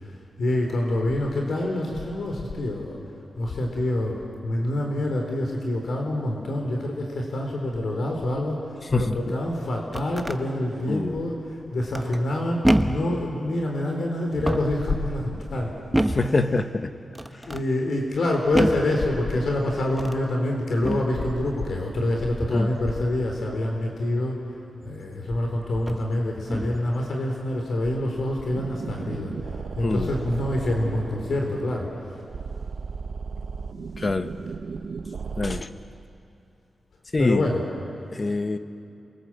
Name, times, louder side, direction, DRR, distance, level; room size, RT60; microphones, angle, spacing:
voice 1, 0.0-3.0 3.3-4.2 4.4-8.6 8.9-11.4 11.7-15.7 16.1-16.6 17.5-24.4 24.8-32.1 37.2-37.6, left 1 dB, 70° left, 1 dB, 4.0 m, -26 dB
sound 1, 9.6-10.4 11.9-12.3 12.6-13.1 14.3-14.8 15.9-16.4 17.1-17.7 18.5-18.9 19.9-20.3 20.8-21.1 22.4-22.7 24.8-24.9 25.8-26.1 26.5-26.9, right 1 dB, 10° right, 1.1 m, -26 dB
voice 2, 16.1-16.9 22.5-22.7 29.8-30.1 34.0-34.3 35.4-35.7 37.1-37.4 38.1-38.6, left 3 dB, 35° left, 9 dB, 1.1 m, -24 dB
sound 2, 28.5-35.6, right 5 dB, 70° right, 1.1 m, -35 dB
28.5 x 23.0 x 7.7 m, 2.6 s
wide cardioid pair, 110°, 0 cm